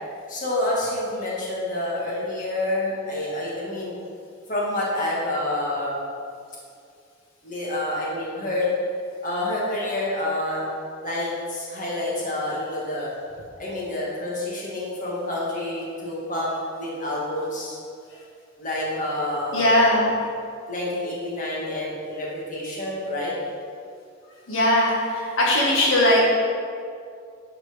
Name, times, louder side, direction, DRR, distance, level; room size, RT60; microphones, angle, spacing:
voice 1, 0.3-3.9 4.5-6.1 7.4-8.7 9.2-10.7 11.0-13.1 13.6-16.5 16.8-17.8 18.6-19.8 20.7-23.3, left 1 dB, 40° left, -6 dB, 2.0 m, -28 dB
voice 2, 19.5-20.1 24.5-26.3, left 1 dB, 80° left, -4 dB, 1.9 m, -19 dB
11.5 x 4.8 x 5.2 m, 2.3 s
head